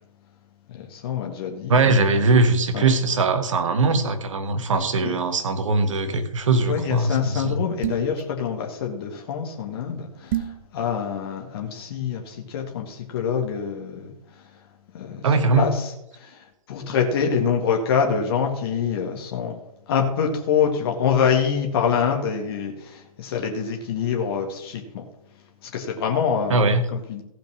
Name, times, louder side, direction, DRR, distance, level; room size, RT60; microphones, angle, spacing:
voice 1, 0.7-2.1 2.7-2.9 5.0-5.2 6.7-14.6 14.9-15.3 15.5-19.6 19.9-25.1 25.6-26.6 26.9-27.2, left 7 dB, 40° left, 2 dB, 1.8 m, -26 dB
voice 2, 1.7-7.5 15.2-15.7 26.5-26.8, right 3 dB, 55° right, 8 dB, 1.6 m, -20 dB
sound 1, 7.8-8.2 10.3-10.6, right 12 dB, 35° right, 1.2 m, -27 dB
15.5 x 5.2 x 6.3 m, 0.84 s
figure-of-eight pair, 130°, 19 cm